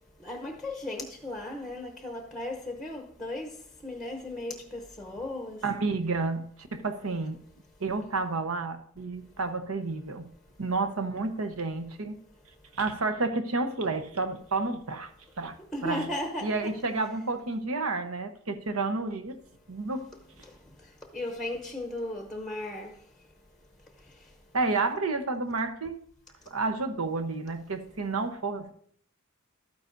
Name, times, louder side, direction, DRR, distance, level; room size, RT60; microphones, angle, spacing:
voice 1, 0.2-3.5 3.8-5.6 15.7-16.7 21.1-22.9, left 1 dB, ahead, 0.8 m, -35 dB
voice 2, 5.6-6.4 6.7-7.4 7.8-10.3 10.6-12.2 12.7-15.1 15.4-15.6 15.8-16.1 16.4-19.4 19.7-20.1 24.5-26.0 26.5-28.7, right 3 dB, 90° right, 1.0 m, -30 dB
12.0 x 9.6 x 2.6 m
head